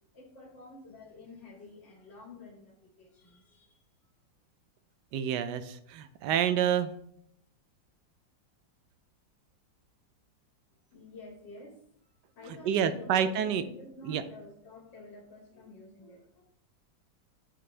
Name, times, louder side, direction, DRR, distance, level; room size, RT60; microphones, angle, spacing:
voice 1, 0.1-3.8 4.0-4.1 10.9-11.8 12.2-16.4, left 2 dB, 65° left, -3 dB, 2.4 m, -50 dB
voice 2, 5.1-6.9 12.6-13.6 14.1-14.2, right 9 dB, 70° right, 11 dB, 1.1 m, -28 dB
9.6 x 5.2 x 3.3 m, 0.70 s
omnidirectional pair, 2.1 m